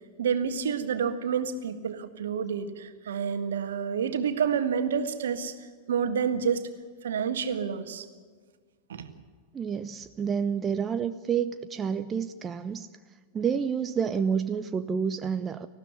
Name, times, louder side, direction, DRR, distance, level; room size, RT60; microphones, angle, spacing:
voice 1, 0.2-5.5 5.9-6.7 7.0-8.1 8.9-9.1, right 7 dB, 65° right, 9 dB, 1.7 m, -29 dB
voice 2, 9.5-12.9 13.3-15.7, right 7 dB, 20° right, 10 dB, 0.7 m, -29 dB
19.5 x 15.5 x 9.6 m, 1.6 s
figure-of-eight pair, 90°, 0 cm